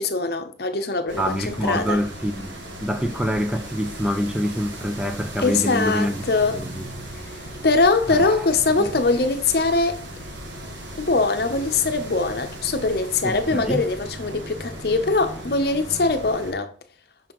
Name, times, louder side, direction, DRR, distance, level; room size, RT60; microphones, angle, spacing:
voice 1, 0.0-2.0 5.4-6.6 7.6-10.0 11.0-16.7, left 3 dB, 55° left, 0.7 m, -22 dB
sound 1, 1.1-16.5, right 1 dB, 85° right, 1.5 m, -37 dB
voice 2, 1.2-6.2 6.5-6.9 8.1-8.5 8.8-8.9 13.2-13.9, equal, 5° right, 0.4 m, -26 dB
6.0 x 5.5 x 3.0 m
head